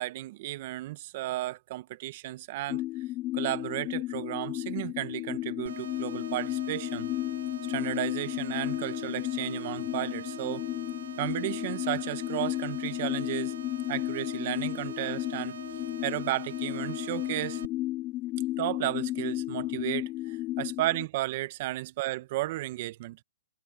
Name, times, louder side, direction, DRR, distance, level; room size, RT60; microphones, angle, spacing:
voice 1, 0.0-2.8 3.3-7.1 7.7-10.7 11.2-13.6 13.9-15.6 16.0-17.6 18.6-23.2, right 17 dB, 45° right, 1.2 m, -33 dB
sound 1, 2.7-21.1, left 16 dB, 25° left, 0.4 m, -33 dB
sound 2, 5.7-17.7, right 8 dB, 75° right, 1.6 m, -45 dB
hypercardioid pair, 150°, 0 cm